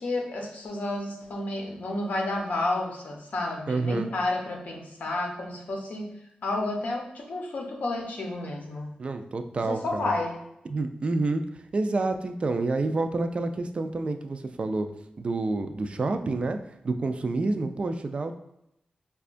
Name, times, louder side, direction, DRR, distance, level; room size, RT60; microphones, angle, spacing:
voice 1, 0.0-6.1 6.4-8.9 9.5-10.4, left 2 dB, 70° left, 0 dB, 0.8 m, -31 dB
voice 2, 3.7-4.1 9.0-10.1 10.7-11.4 11.7-14.9 15.2-16.6 16.8-18.3, right 3 dB, 45° right, 7 dB, 0.3 m, -28 dB
5.0 x 2.3 x 2.5 m, 0.82 s
wide cardioid pair, 105°, 3 cm